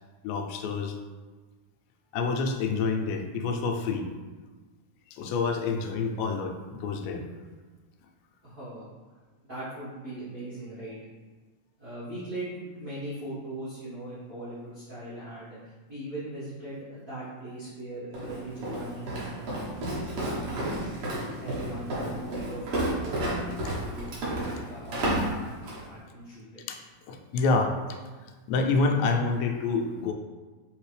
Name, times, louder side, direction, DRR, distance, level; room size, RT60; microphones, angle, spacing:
voice 1, 0.2-1.0 2.1-4.1 5.1-7.3 26.7-26.8 27.1-28.0 28.5-30.1, left 4 dB, 90° left, 3 dB, 2.3 m, -27 dB
voice 2, 8.4-8.9 9.4-11.0 11.8-15.6 15.9-20.9 21.3-22.6 22.9-26.6, right 1 dB, 55° right, -14 dB, 1.0 m, -40 dB
Walk footsteps, 18.1-25.9, right 1 dB, 75° right, 1.3 m, -31 dB
4.9 x 3.3 x 3.2 m, 1.3 s
omnidirectional pair, 4.0 m